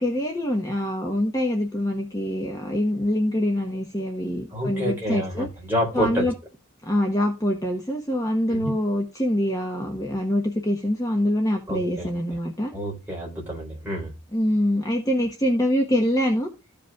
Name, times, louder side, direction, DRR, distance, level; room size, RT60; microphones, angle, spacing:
voice 1, 0.0-5.5 5.9-6.3 6.8-12.7 14.3-16.5, equal, 15° left, 1 dB, 1.1 m, -24 dB
voice 2, 4.5-6.3 8.5-8.7 11.7-12.1 12.7-14.1, equal, 10° right, -4 dB, 3.6 m, -28 dB
14.5 x 5.2 x 2.4 m, 0.30 s
head